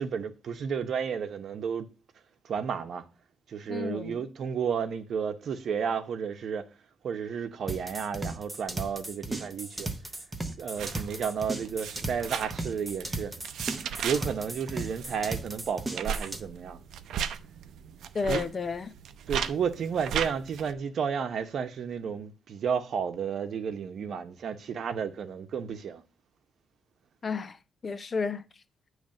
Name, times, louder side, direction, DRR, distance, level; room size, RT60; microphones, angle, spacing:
voice 1, 0.0-1.9 2.4-3.0 3.5-6.7 7.0-9.9 10.6-13.3 14.0-16.8 18.3-18.4 19.3-26.0, right 7 dB, 55° right, 0.9 m, -32 dB
voice 2, 3.7-4.2 18.1-18.9 27.2-27.6 27.8-28.4, left 5 dB, 30° left, 0.6 m, -31 dB
sound 1, 7.7-16.4, right 2 dB, 10° right, 0.8 m, -36 dB
sound 2, 10.7-20.7, right 8 dB, 75° right, 0.5 m, -37 dB
8.8 x 3.2 x 6.4 m
cardioid pair, 140°, 0 cm